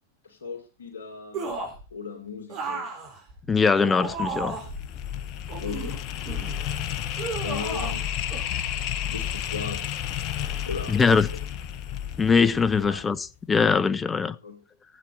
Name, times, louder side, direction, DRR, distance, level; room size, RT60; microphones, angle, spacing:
voice 1, 0.2-1.5 1.9-2.9 5.6-5.9 7.4-8.0 9.0-9.9 10.4-11.4 12.8-13.0 14.4-14.6, left 5 dB, 65° left, 2.8 m, -37 dB
sound 1, 1.3-1.8 2.5-4.8 5.5-6.6 7.2-8.0 8.3-8.5, right 4 dB, 40° right, 4.9 m, -34 dB
voice 2, 3.5-4.6 10.9-11.3 12.2-14.3, left 5 dB, 15° left, 0.8 m, -21 dB
sound 2, 4.0-13.2, left 10 dB, 40° left, 1.1 m, -32 dB
15.5 x 9.2 x 4.2 m
figure-of-eight pair, 90°, 0 cm